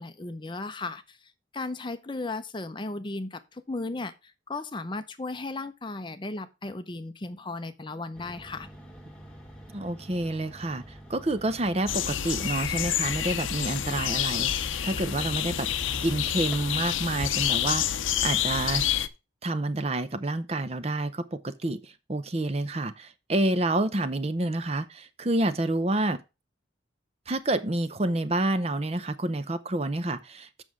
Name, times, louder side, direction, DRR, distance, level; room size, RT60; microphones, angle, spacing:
voice 1, 0.0-8.7, left 2 dB, 25° left, 0.6 m, -36 dB
sound 1, 8.1-17.1, equal, 5° left, 1.6 m, -47 dB
voice 2, 9.7-15.7 16.0-18.9 19.4-26.2 27.3-30.6, right 2 dB, 30° right, 0.7 m, -28 dB
sound 2, 11.9-19.1, left 10 dB, 85° left, 0.7 m, -28 dB
7.6 x 6.3 x 4.8 m
head